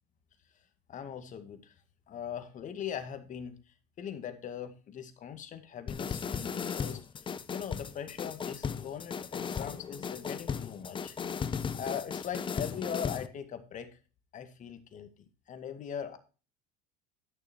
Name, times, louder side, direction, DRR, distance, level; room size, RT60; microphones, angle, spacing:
voice 1, 0.9-1.7 2.1-3.6 4.0-7.0 7.5-11.2 11.7-14.0 14.3-15.1 15.5-16.2, left 8 dB, 40° left, 8 dB, 2.1 m, -40 dB
sound 1, 5.9-13.3, left 6 dB, 25° left, 0.9 m, -36 dB
12.5 x 6.7 x 4.6 m, 0.34 s
supercardioid pair, 95°, 19 cm